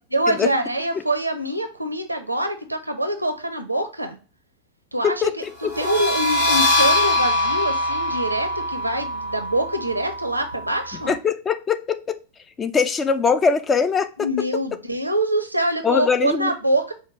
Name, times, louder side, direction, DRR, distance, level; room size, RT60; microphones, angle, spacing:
voice 1, 0.1-4.2 4.9-5.2 5.6-11.1 14.2-16.9, right 1 dB, 85° right, 7 dB, 0.6 m, -24 dB
voice 2, 5.0-5.7 11.0-12.0 12.6-14.3 15.8-16.5, left 6 dB, 20° left, 11 dB, 0.4 m, -21 dB
sound 1, 5.6-11.1, left 1 dB, 55° left, 1.3 m, -23 dB
5.0 x 2.2 x 3.0 m, 0.35 s
figure-of-eight pair, 90°, 0 cm